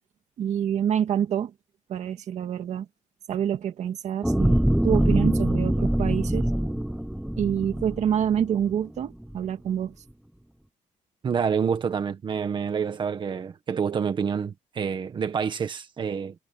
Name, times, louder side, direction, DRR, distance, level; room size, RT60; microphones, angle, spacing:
voice 1, 0.4-1.5 1.9-2.9 3.3-4.6 4.8-6.5 7.4-9.9, right 9 dB, 65° right, 1.9 m, -27 dB
sound 1, 4.2-8.7 9.2-9.3, right 1 dB, 5° right, 0.9 m, -24 dB
voice 2, 11.2-16.3, right 6 dB, 40° right, 1.6 m, -27 dB
cardioid pair, 160°, 13 cm